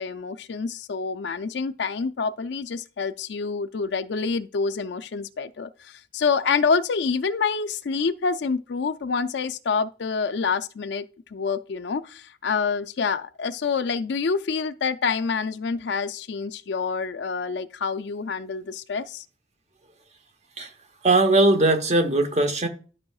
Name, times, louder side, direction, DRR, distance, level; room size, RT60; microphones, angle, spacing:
voice 1, 0.0-11.0 11.3-19.2, left 5 dB, 70° left, 0.4 m, -27 dB
voice 2, 21.0-22.7, right 2 dB, 35° right, 1.0 m, -19 dB
12.0 x 5.6 x 2.4 m
head